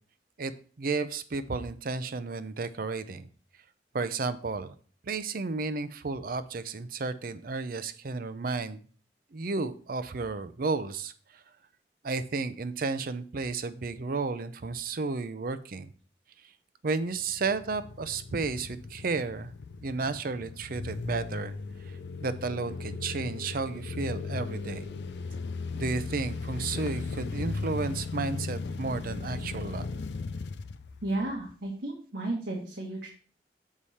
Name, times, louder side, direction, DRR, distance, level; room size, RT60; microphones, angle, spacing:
voice 1, 0.8-3.3 3.9-4.7 5.0-8.8 9.3-11.4 12.0-15.9 16.8-19.5 19.8-21.5 21.8-21.9 22.2-24.9 25.7-29.9, right 4 dB, 55° right, 12 dB, 0.6 m, -32 dB
sound 1, 17.2-31.5, left 4 dB, 75° left, 0.5 m, -37 dB
voice 2, 31.0-33.1, right 2 dB, 85° right, -2 dB, 1.6 m, -33 dB
7.3 x 4.9 x 4.1 m, 0.42 s
head